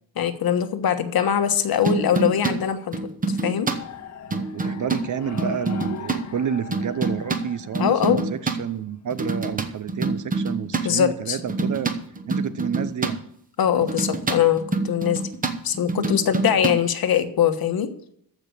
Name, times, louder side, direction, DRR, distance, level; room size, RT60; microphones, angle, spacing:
voice 1, 0.2-3.7 7.8-8.2 10.8-11.4 13.6-15.2 15.6-17.9, left 9 dB, 55° left, 9 dB, 1.3 m, -22 dB
sound 1, 1.9-2.6 2.9-3.8 4.3-5.0 5.4-6.2 6.7-8.6 9.1-10.9 11.4-13.2 13.8-16.8, right 3 dB, 20° right, 1.0 m, -26 dB
sound 2, 3.7-8.6, left 7 dB, 40° left, 1.0 m, -39 dB
voice 2, 4.3-12.0 12.3-13.2, right 8 dB, 45° right, 14 dB, 0.6 m, -30 dB
14.5 x 5.8 x 8.1 m, 0.68 s
cardioid pair, 155°, 43 cm